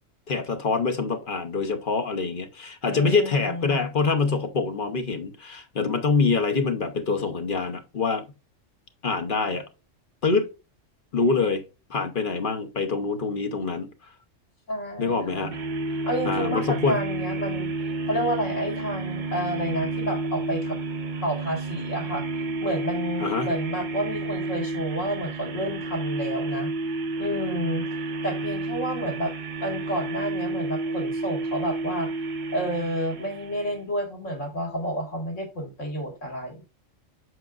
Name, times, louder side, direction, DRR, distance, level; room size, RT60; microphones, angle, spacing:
voice 1, 0.3-8.2 9.0-9.7 10.2-10.5 11.1-11.6 11.9-13.9 15.0-15.6 16.2-17.0 23.2-23.5, left 4 dB, 45° left, 0.9 m, -25 dB
voice 2, 2.8-3.8 14.7-15.5 16.0-17.7 18.1-20.8 21.2-22.3 22.6-26.7 27.2-27.9 28.2-32.3 32.5-36.6, equal, 70° left, 2.3 m, -30 dB
sound 1, 15.5-33.8, right 2 dB, 50° right, 0.7 m, -31 dB
7.7 x 5.8 x 2.4 m
omnidirectional pair, 1.3 m